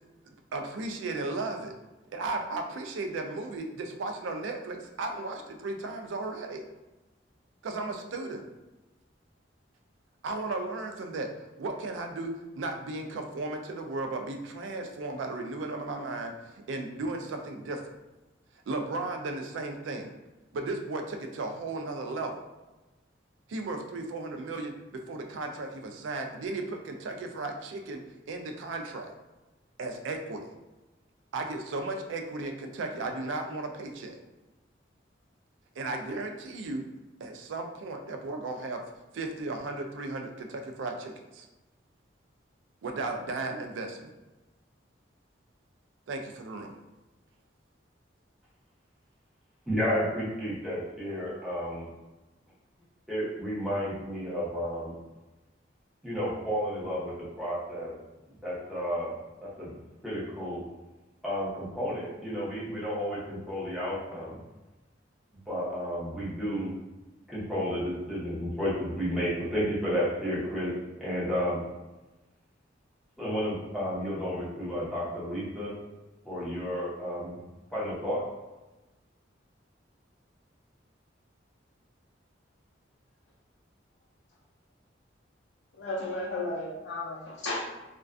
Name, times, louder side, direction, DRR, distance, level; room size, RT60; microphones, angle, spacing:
voice 1, 0.5-1.7 2.1-6.6 7.6-8.4 10.2-11.3 11.6-12.3 12.6-16.3 16.7-17.8 18.7-20.1 20.5-22.4 23.5-28.0 28.3-29.1 29.8-30.5 31.3-34.2 35.8-36.8 37.2-38.8 39.1-41.5 42.8-44.1 46.1-46.7, right 2 dB, 85° right, 4 dB, 0.3 m, -35 dB
voice 2, 49.7-51.9 53.1-54.9 56.0-57.9 58.4-59.1 59.4-59.7 60.0-60.6 61.2-64.4 65.5-66.7 67.3-70.7 71.0-71.6 73.2-75.7 76.2-77.3 77.7-78.2, equal, ahead, -10 dB, 0.8 m, -32 dB
voice 3, 85.7-87.6, left 2 dB, 75° left, -5 dB, 0.4 m, -34 dB
2.4 x 2.2 x 2.3 m, 1.1 s
head